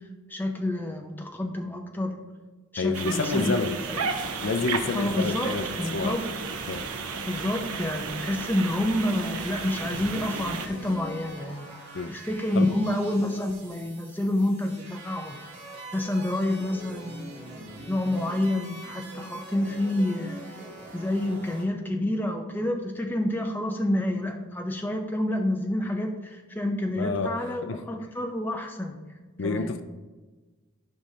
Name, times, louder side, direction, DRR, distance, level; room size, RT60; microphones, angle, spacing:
voice 1, 0.3-2.1 2.7-4.1 4.9-6.3 6.6-6.8 7.3-11.7 12.1-15.4 15.9-17.6 17.9-20.4 20.9-29.0 29.4-29.7, left 1 dB, 10° left, 2 dB, 0.6 m, -28 dB
voice 2, 2.8-3.8 4.4-6.2 6.7-6.8 11.9-12.2 12.5-12.7 27.0-27.8 29.4-29.8, left 4 dB, 60° left, 9 dB, 0.4 m, -29 dB
sound 1, 2.9-10.7, right 5 dB, 85° right, 0.7 m, -33 dB
sound 2, 4.0-10.9, right 1 dB, 20° right, 1.4 m, -46 dB
sound 3, 9.9-21.6, right 1 dB, 50° right, 2.5 m, -43 dB
13.0 x 5.1 x 2.8 m, 1.3 s
head